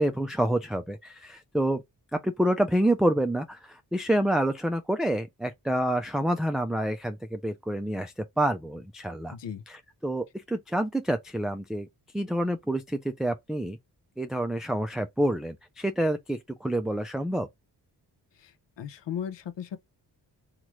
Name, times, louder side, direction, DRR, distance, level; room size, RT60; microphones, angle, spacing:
voice 1, 0.0-1.8 2.1-9.4 9.7-11.9 12.1-13.8 14.2-17.5, right 1 dB, ahead, 0.3 m, -28 dB
voice 2, 9.3-9.6 18.4-19.8, left 8 dB, 80° left, 0.6 m, -36 dB
3.0 x 2.4 x 3.0 m
cardioid pair, 45°, 43 cm